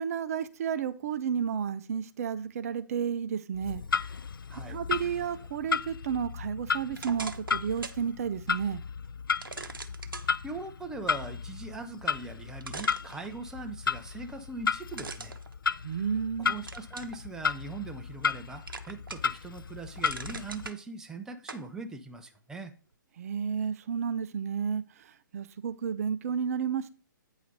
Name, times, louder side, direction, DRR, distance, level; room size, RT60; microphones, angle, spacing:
voice 1, 0.0-3.8 4.6-8.8 15.8-16.6 23.2-26.9, right 7 dB, 45° right, 0.6 m, -32 dB
Clock, 3.5-20.7, left 6 dB, 85° left, 0.4 m, -34 dB
voice 2, 4.5-4.8 10.4-15.4 16.4-22.7, right 3 dB, 5° right, 0.6 m, -41 dB
sound 1, 6.9-8.0 8.5-8.6 9.4-10.3 12.1-12.2 12.6-13.7 14.9-16.2 16.7-17.2 17.7-18.4 18.7-19.4 19.7-20.8 21.5-21.7, right 4 dB, 85° right, 0.9 m, -41 dB
9.0 x 5.0 x 4.1 m
figure-of-eight pair, 135°, 11 cm